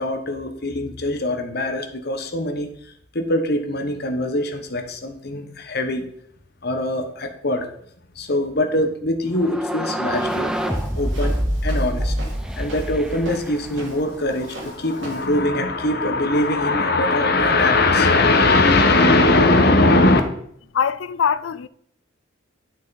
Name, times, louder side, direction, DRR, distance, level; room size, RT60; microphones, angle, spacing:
voice 1, 0.0-2.7 3.1-6.0 6.6-7.7 8.1-10.5 10.9-11.4 11.6-12.1 12.6-20.2, left 2 dB, 55° left, 1.2 m, -21 dB
sound 1, 9.4-14.2, equal, 5° right, 0.6 m, -26 dB
Walk footsteps, 10.1-15.4, right 1 dB, 75° right, 2.9 m, -39 dB
voice 2, 20.7-21.7, left 7 dB, 85° left, 0.4 m, -22 dB
11.0 x 6.2 x 4.1 m
head